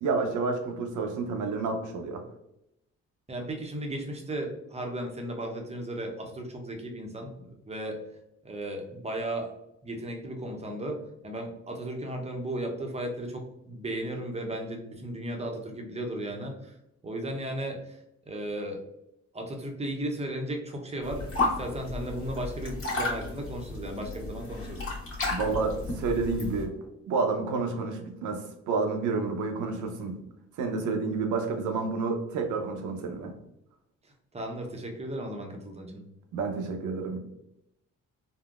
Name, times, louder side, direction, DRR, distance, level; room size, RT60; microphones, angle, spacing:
voice 1, 0.0-2.2 25.3-26.7 27.1-28.4 28.7-30.2 30.6-33.3 36.3-37.2, right 4 dB, 80° right, 4 dB, 0.6 m, -29 dB
voice 2, 3.3-8.0 8.4-9.5 9.8-16.7 17.0-18.0 18.3-18.8 19.3-24.8 34.3-36.0, right 1 dB, 20° right, 2 dB, 0.6 m, -35 dB
sound 1, 21.0-26.6, left 3 dB, 45° left, 1.2 m, -33 dB
3.6 x 2.0 x 2.3 m, 0.83 s
cardioid pair, 90°, 30 cm